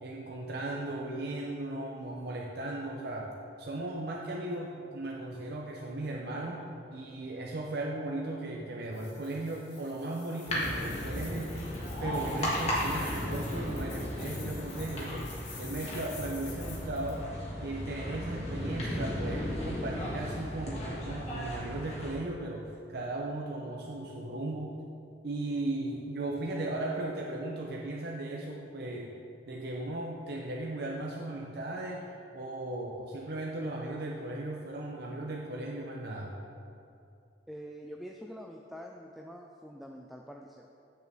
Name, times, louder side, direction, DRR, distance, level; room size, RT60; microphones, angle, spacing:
voice 1, 0.0-3.3 3.6-6.6 6.9-11.6 12.0-15.3 15.6-17.3 17.6-24.8 25.2-29.1 29.5-32.1 32.3-36.3, right 2 dB, 60° right, -2 dB, 0.6 m, -37 dB
sound 1, 8.9-17.2, left 5 dB, 75° left, 1.7 m, -49 dB
sound 2, 10.5-22.2, equal, 40° left, 1.7 m, -35 dB
voice 2, 37.5-40.7, equal, ahead, 1 dB, 0.3 m, -45 dB
8.5 x 6.6 x 3.5 m, 2.6 s
head